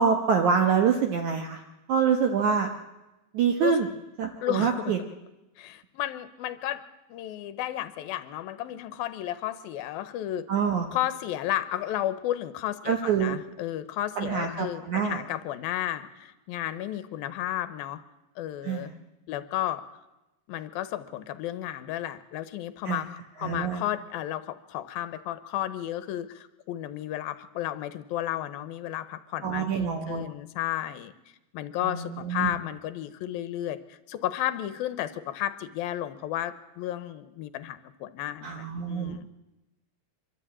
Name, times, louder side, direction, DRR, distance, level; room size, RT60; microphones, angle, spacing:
voice 1, 0.0-1.6 1.9-2.7 3.3-3.9 4.2-5.0 10.5-10.9 12.9-13.4 14.2-15.2 18.6-18.9 22.9-23.0 23.4-23.8 29.4-30.2 31.8-32.6 38.4-39.3, right 6 dB, 65° right, 4 dB, 2.2 m, -26 dB
voice 2, 4.4-4.9 5.6-6.8 7.1-10.5 10.9-18.0 18.4-18.9 19.3-19.8 20.5-31.1 31.5-39.3, left 13 dB, 80° left, 12 dB, 2.7 m, -33 dB
24.5 x 12.5 x 8.6 m, 1.0 s
omnidirectional pair, 4.3 m